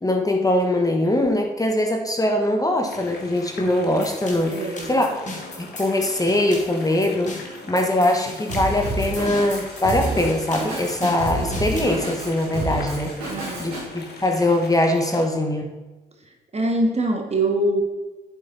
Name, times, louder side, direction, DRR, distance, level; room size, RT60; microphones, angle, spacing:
voice 1, 0.0-4.6 4.9-5.1 5.6-13.1 13.6-15.7, left 1 dB, 20° left, 3 dB, 1.4 m, -22 dB
sound 1, 2.9-15.3, left 2 dB, 55° left, 2.0 m, -41 dB
sound 2, 4.0-12.0, left 2 dB, 40° left, 2.6 m, -38 dB
voice 2, 4.5-5.0 13.2-13.7 16.5-17.8, right 1 dB, 35° right, 3 dB, 2.0 m, -23 dB
Drum kit, 8.5-13.8, right 2 dB, 90° right, 2.9 m, -29 dB
8.2 x 7.9 x 4.2 m, 1.2 s
hypercardioid pair, 45°, 19 cm